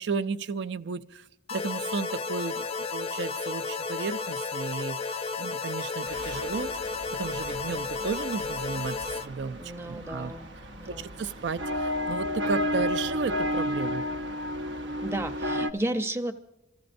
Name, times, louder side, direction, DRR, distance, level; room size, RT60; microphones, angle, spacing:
voice 1, 0.0-10.3 10.8-14.1, right 4 dB, 65° right, 11 dB, 0.5 m, -34 dB
sound 1, 1.5-9.3, left 4 dB, 30° left, 0.4 m, -33 dB
sound 2, 6.1-15.7, equal, 85° right, 0.9 m, -33 dB
voice 2, 9.6-10.5 10.8-11.2 15.0-16.3, right 1 dB, 15° right, 6 dB, 0.7 m, -33 dB
27.0 x 15.0 x 2.6 m, 0.94 s
head